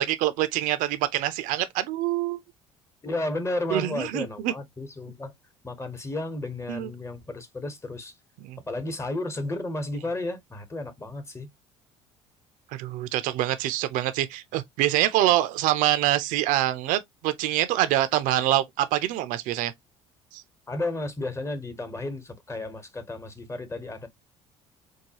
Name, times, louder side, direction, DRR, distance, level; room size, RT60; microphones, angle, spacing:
voice 1, 0.0-2.4 3.7-4.5 6.7-6.9 8.4-8.6 12.8-19.7 20.3-20.4, right 14 dB, 65° right, 0.6 m, -25 dB
voice 2, 3.0-5.3 5.6-8.1 8.7-11.5 20.7-24.1, left 2 dB, 20° left, 1.2 m, -33 dB
4.7 x 2.3 x 2.8 m
hypercardioid pair, 65°, 15 cm